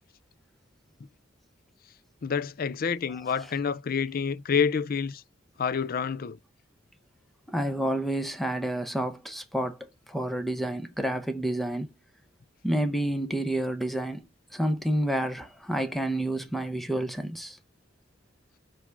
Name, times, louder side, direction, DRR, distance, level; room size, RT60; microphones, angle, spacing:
voice 1, 2.2-5.2 5.6-6.4, left 6 dB, 45° left, 0.4 m, -28 dB
voice 2, 7.5-9.8 10.1-11.9 12.6-14.3 14.5-17.6, right 1 dB, ahead, 0.9 m, -29 dB
6.0 x 4.9 x 4.6 m
head